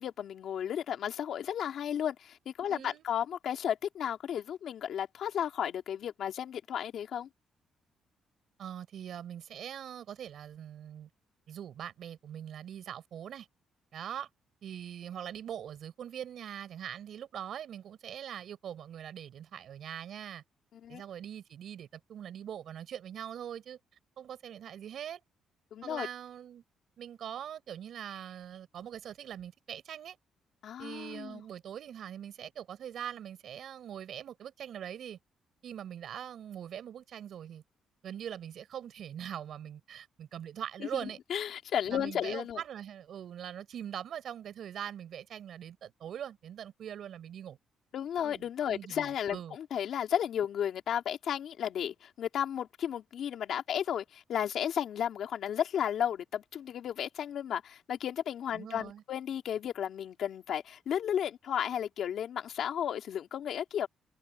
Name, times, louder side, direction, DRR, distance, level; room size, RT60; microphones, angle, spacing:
voice 1, 0.0-7.3 20.7-21.0 25.7-26.1 30.6-31.4 41.0-42.6 47.9-63.9, left 9 dB, 60° left, 3.0 m, -33 dB
voice 2, 2.7-3.0 8.6-11.1 11.5-13.5 13.9-14.3 14.6-20.4 20.9-23.8 24.2-25.2 25.8-26.6 27.0-30.2 30.8-35.2 35.6-37.6 38.0-41.2 41.9-47.6 48.2-49.6 58.5-59.0, right 9 dB, 60° right, 5.5 m, -42 dB
cardioid pair, 140°, 0 cm